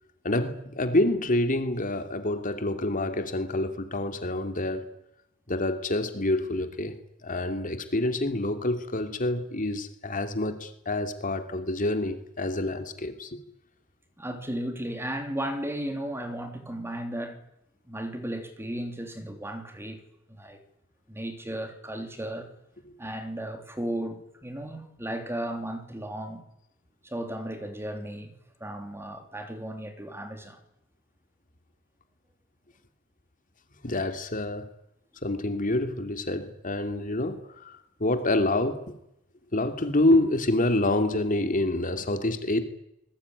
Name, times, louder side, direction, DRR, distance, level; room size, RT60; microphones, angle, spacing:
voice 1, 0.2-4.9 5.5-6.9 7.2-13.4 33.8-34.7 35.2-38.9 39.5-42.6, left 1 dB, 40° left, 2.7 m, -27 dB
voice 2, 14.2-17.4 17.9-20.0 20.4-20.6 21.1-22.5 23.0-26.5 27.0-28.3 28.6-30.6, right 1 dB, 10° right, 3.3 m, -35 dB
27.0 x 21.0 x 9.8 m
head